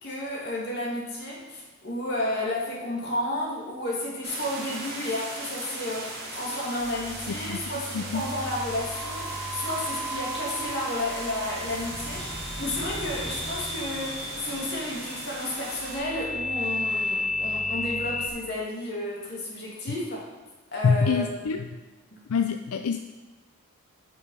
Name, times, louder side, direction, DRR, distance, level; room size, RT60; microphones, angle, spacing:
voice 1, 0.0-12.3 12.6-20.2 20.7-21.6 22.1-22.2, left 1 dB, 50° left, -3 dB, 2.5 m, -32 dB
sound 1, 4.2-16.0, right 2 dB, 45° right, 2.5 m, -38 dB
sound 2, 6.6-18.3, left 2 dB, 5° left, 0.8 m, -34 dB
voice 2, 7.3-7.6 7.9-8.3 20.8-21.6 22.3-23.0, left 5 dB, 80° left, 7 dB, 0.4 m, -25 dB
8.9 x 6.1 x 5.5 m, 1.2 s
head